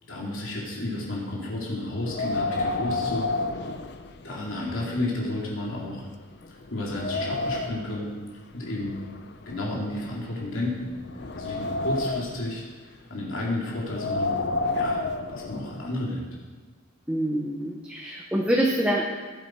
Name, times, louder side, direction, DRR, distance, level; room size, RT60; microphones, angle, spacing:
voice 1, 0.0-3.7 4.2-6.1 6.5-8.1 8.5-9.0 9.5-11.0 11.3-14.4 14.7-15.0 15.3-16.3, left 1 dB, 80° left, -4 dB, 2.9 m, -32 dB
Wind, 2.0-4.6 5.0-5.1 5.7-5.8 6.3-7.9 8.8-10.3 10.9-12.5 13.8-15.9, left 2 dB, 55° left, 0.7 m, -30 dB
voice 2, 17.1-19.0, right 1 dB, 5° right, -1 dB, 0.9 m, -25 dB
17.0 x 8.1 x 4.6 m, 1.4 s
head